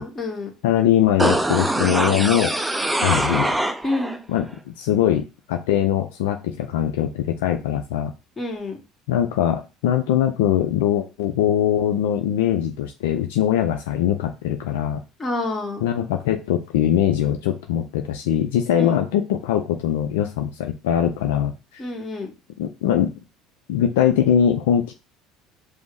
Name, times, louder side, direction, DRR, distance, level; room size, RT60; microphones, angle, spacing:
voice 1, 0.0-0.5 3.8-4.2 8.4-8.8 15.2-15.8 18.8-19.0 21.8-22.3, left 2 dB, 25° left, 1 dB, 1.5 m, -28 dB
voice 2, 0.6-2.5 2.9-3.6 4.3-8.1 9.1-15.0 15.8-21.8 22.6-23.1 23.7-24.9, left 10 dB, 85° left, 5 dB, 0.4 m, -21 dB
sound 1, 1.2-4.2 4.5-4.6, right 1 dB, 10° right, 0.4 m, -23 dB
5.2 x 2.0 x 4.7 m, 0.29 s
hypercardioid pair, 80°, 0 cm